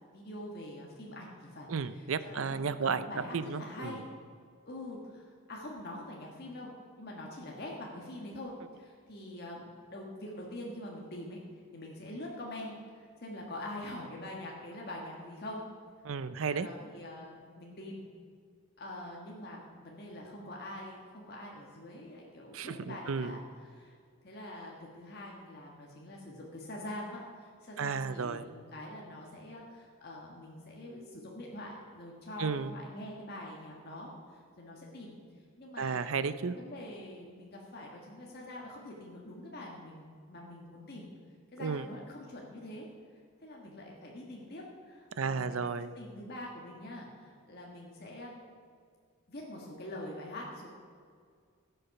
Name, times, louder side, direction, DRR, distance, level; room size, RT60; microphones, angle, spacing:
voice 1, 0.1-4.1 4.6-6.7 7.0-15.6 16.1-18.0 18.8-24.0 24.2-35.2 35.6-36.1 36.5-41.1 41.5-42.9 43.1-45.4 45.9-48.4 49.3-50.7, left 1 dB, 45° left, -2 dB, 1.5 m, -44 dB
voice 2, 1.7-3.0 3.3-3.9 16.0-16.7 22.5-23.4 27.8-28.4 32.4-32.7 35.8-36.5 41.6-41.8 45.2-45.9, right 5 dB, 70° right, 14 dB, 0.5 m, -33 dB
17.0 x 6.9 x 5.8 m, 2.1 s
head